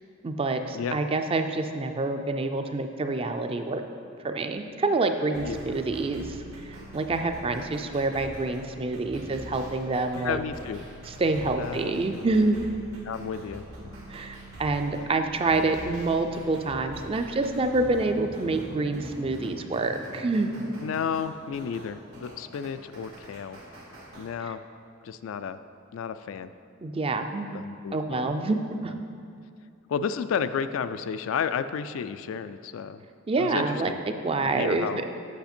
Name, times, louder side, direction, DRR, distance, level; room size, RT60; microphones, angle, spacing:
voice 1, 0.2-3.8 4.2-10.4 11.1-12.6 14.1-20.6 24.4-24.5 26.8-27.6 27.9-28.9 33.3-33.9 34.2-35.2, right 3 dB, 25° right, 7 dB, 0.4 m, -27 dB
sound 1, 5.3-24.3, equal, 85° right, 1.7 m, -44 dB
voice 2, 10.1-10.8 11.6-12.2 13.0-13.6 15.0-15.1 20.8-23.6 24.2-24.6 25.0-25.6 25.9-26.5 27.5-28.3 29.9-33.0 33.4-34.0 34.5-35.0, left 7 dB, 70° left, 12 dB, 0.3 m, -32 dB
8.2 x 5.8 x 4.3 m, 2.4 s
head